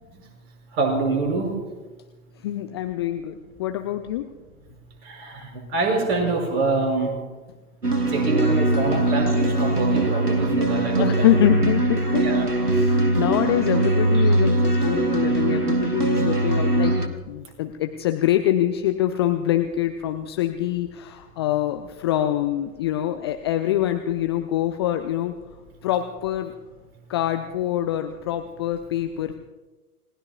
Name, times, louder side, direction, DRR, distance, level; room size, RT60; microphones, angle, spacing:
voice 1, 0.7-1.6 5.0-7.2 8.1-11.3 12.2-12.5, right 3 dB, 45° right, 0 dB, 5.9 m, -25 dB
voice 2, 2.4-4.3 10.9-12.4 12.7-25.3 25.8-26.5 27.1-29.4, left 12 dB, 20° left, 7 dB, 0.4 m, -25 dB
sound 1, 7.8-17.1, right 2 dB, 85° right, 1.7 m, -21 dB
29.5 x 18.5 x 2.4 m, 1.2 s
figure-of-eight pair, 100°, 45 cm